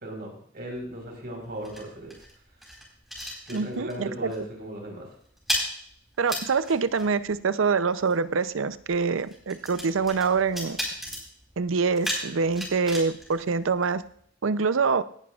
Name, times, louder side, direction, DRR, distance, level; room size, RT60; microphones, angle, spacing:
voice 1, 0.0-2.2 3.5-5.1, right 1 dB, 55° right, 2 dB, 4.2 m, -37 dB
sound 1, 0.8-4.0 4.3-4.6 4.8-14.2, equal, ahead, 4.4 m, -36 dB
voice 2, 3.5-4.3 6.2-10.8 11.6-14.0 14.4-15.0, right 5 dB, 75° right, 14 dB, 0.6 m, -25 dB
18.0 x 11.0 x 2.4 m, 0.63 s
head